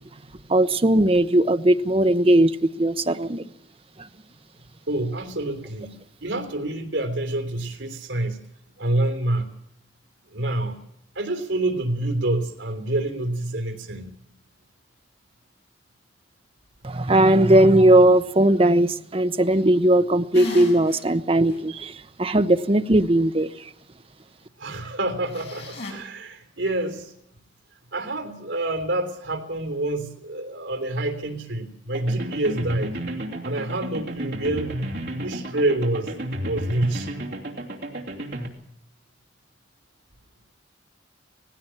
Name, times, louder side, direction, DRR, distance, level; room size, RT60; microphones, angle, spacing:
voice 1, 0.5-3.4 16.8-23.5, right 1 dB, 30° right, 0.7 m, -18 dB
voice 2, 4.9-8.4 8.8-9.5 10.3-10.8 11.1-14.1 24.6-27.1 27.9-33.0 33.4-34.7 35.2-36.1 36.4-37.1, right 1 dB, 75° right, 3.2 m, -27 dB
sound 1, 20.3-21.0 21.5-21.6 25.3-25.9, left 1 dB, 60° left, 6.1 m, -34 dB
sound 2, 31.9-38.5, right 1 dB, 60° right, 2.8 m, -32 dB
18.5 x 16.0 x 9.0 m
head